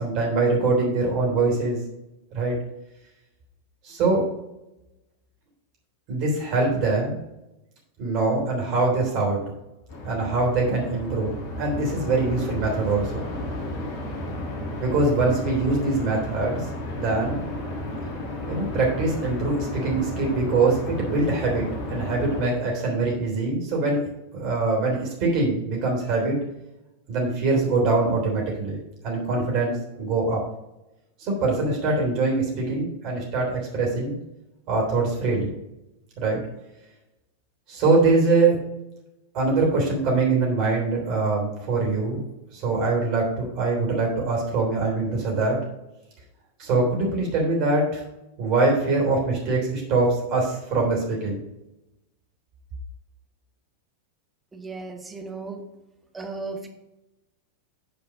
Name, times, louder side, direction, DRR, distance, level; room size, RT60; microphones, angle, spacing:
voice 1, 0.0-1.8 2.3-2.5 3.8-4.2 6.1-7.1 8.0-9.4 10.0-13.2 14.8-16.7 16.9-17.4 18.5-24.0 24.3-26.4 27.1-30.4 31.2-34.1 34.7-35.5 36.2-36.4 37.7-38.6 39.3-42.2 42.5-45.6 46.6-48.0 48.4-51.4, right 3 dB, 40° right, -1 dB, 3.4 m, -23 dB
sound 1, 9.9-22.4, left 1 dB, 45° left, 1.9 m, -33 dB
voice 2, 54.5-55.6 56.1-56.7, right 3 dB, 10° right, 3 dB, 1.4 m, -35 dB
9.4 x 4.7 x 5.0 m, 0.96 s
figure-of-eight pair, 90°, 0 cm